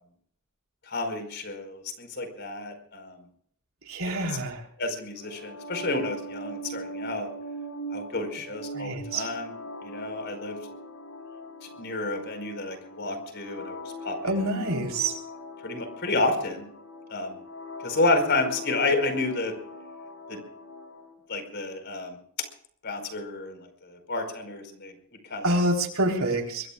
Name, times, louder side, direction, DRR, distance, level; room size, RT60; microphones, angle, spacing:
voice 1, 0.9-3.2 4.0-4.4 4.8-7.3 7.9-9.5 9.8-10.6 11.8-14.5 15.6-16.7 17.1-17.4 17.8-19.5 20.3-20.4 21.3-22.2 22.8-24.9 25.3-25.6, left 2 dB, 55° left, 7 dB, 4.9 m, -30 dB
voice 2, 3.9-4.6 8.7-9.3 14.2-15.2 25.4-26.7, right 1 dB, 75° right, 2 dB, 3.9 m, -27 dB
sound 1, 5.2-21.1, equal, 75° left, 6.4 m, -41 dB
24.0 x 23.5 x 2.5 m, 0.62 s
head